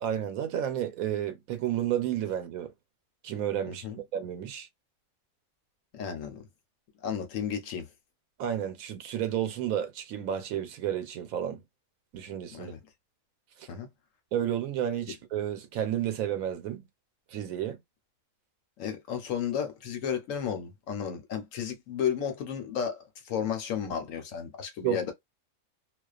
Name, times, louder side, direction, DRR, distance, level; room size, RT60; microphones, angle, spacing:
voice 1, 0.0-2.7 3.2-3.9 4.1-4.7 8.4-11.6 12.1-12.7 13.6-13.7 14.3-16.8 17.3-17.8 24.8-25.1, right 10 dB, 90° right, 1.1 m, -31 dB
voice 2, 3.7-4.0 5.9-6.4 7.0-7.9 12.5-12.8 13.7-13.9 18.8-25.1, left 8 dB, 75° left, 1.1 m, -33 dB
2.4 x 2.3 x 2.3 m
omnidirectional pair, 1.4 m